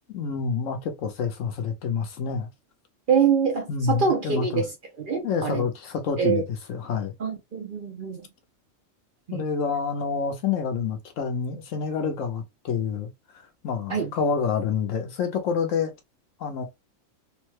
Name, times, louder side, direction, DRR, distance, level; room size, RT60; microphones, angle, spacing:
voice 1, 0.1-2.5 3.7-4.6 5.2-7.1 9.3-13.1 13.6-15.9 16.4-16.6, left 6 dB, 75° left, 1.1 m, -28 dB
voice 2, 3.1-4.7 5.0-5.6 6.2-6.4 7.2-8.3 9.3-9.5 13.9-14.1, right 6 dB, 50° right, 0.7 m, -24 dB
3.5 x 2.2 x 3.1 m
omnidirectional pair, 1.4 m